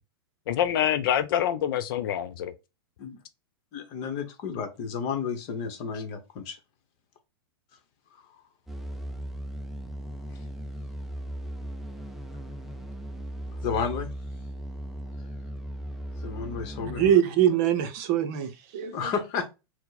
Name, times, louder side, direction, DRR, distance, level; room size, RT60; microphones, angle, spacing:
voice 1, 0.5-2.5, left 10 dB, 55° left, 0.4 m, -26 dB
voice 2, 3.7-6.6 8.1-8.2 13.6-14.1 16.2-17.1 18.9-19.5, left 6 dB, 40° left, 1.0 m, -32 dB
sound 1, 8.7-17.1, right 1 dB, ahead, 0.4 m, -37 dB
voice 3, 16.9-19.1, right 10 dB, 40° right, 0.7 m, -23 dB
4.4 x 2.1 x 4.0 m
supercardioid pair, 150°, 14 cm